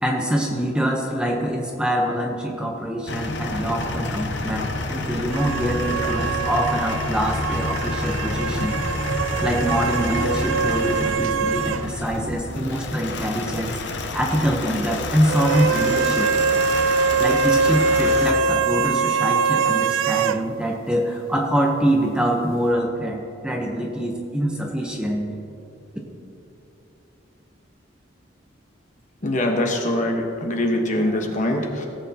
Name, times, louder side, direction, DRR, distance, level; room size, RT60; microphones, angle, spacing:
voice 1, 0.0-8.8 9.4-13.8 14.1-16.3 17.2-25.3, equal, 5° right, 0 dB, 0.8 m, -24 dB
sound 1, 3.1-18.3, left 2 dB, 60° left, 0.8 m, -29 dB
sound 2, 5.3-11.9 12.1-12.2 15.3-20.4, right 5 dB, 80° right, 0.3 m, -23 dB
voice 2, 29.2-31.9, left 1 dB, 40° left, 2 dB, 1.1 m, -23 dB
17.0 x 8.1 x 2.8 m, 2.7 s
head